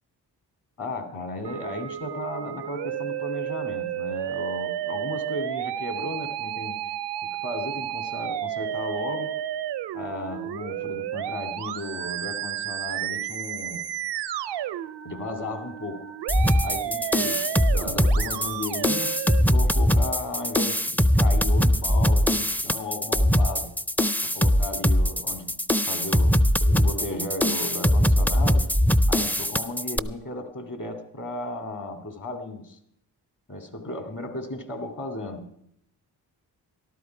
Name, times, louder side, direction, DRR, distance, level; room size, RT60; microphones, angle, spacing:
voice 1, 0.8-6.8 7.2-9.4 9.9-13.9 15.0-16.1 16.6-23.7 24.2-28.7 29.1-32.8 33.5-35.5, left 2 dB, 50° left, 7 dB, 2.7 m, -35 dB
Musical instrument, 1.4-19.4, right 11 dB, 80° right, 0.6 m, -32 dB
sound 1, 16.3-30.0, equal, 5° left, 0.5 m, -21 dB
13.5 x 12.5 x 4.8 m, 0.74 s
cardioid pair, 55°, 40 cm